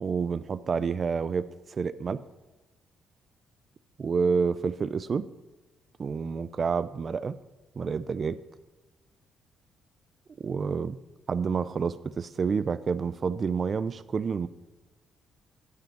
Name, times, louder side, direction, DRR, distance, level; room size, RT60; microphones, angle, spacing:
voice 1, 0.0-2.2 4.0-5.3 6.0-7.4 7.8-8.4 10.4-11.0 11.3-14.5, right 5 dB, 45° right, 15 dB, 0.3 m, -29 dB
12.0 x 5.3 x 5.7 m, 1.1 s
cardioid pair, 90°, 0 cm